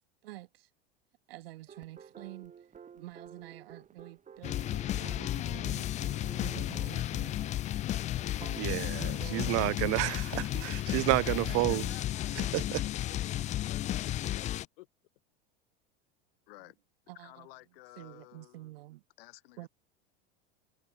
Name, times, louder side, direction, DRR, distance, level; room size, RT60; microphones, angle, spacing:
voice 1, 0.2-0.7 1.3-2.7 2.9-5.9 6.4-7.4 8.3-9.7 10.3-10.8 11.4-12.0 17.1-17.5 18.0-19.0 19.6-19.7, right 17 dB, 80° right, 3.1 m, -48 dB
sound 1, 1.7-11.5, right 7 dB, 25° right, 4.2 m, -54 dB
sound 2, 4.4-14.6, left 13 dB, 25° left, 0.3 m, -33 dB
voice 2, 8.6-10.3 10.6-11.8 12.4-12.8, right 24 dB, 55° right, 1.5 m, -30 dB
voice 3, 11.3-13.4 13.7-14.9 16.5-16.8 17.1-18.7 19.2-19.7, left 21 dB, 70° left, 4.6 m, -53 dB
supercardioid pair, 110°, 29 cm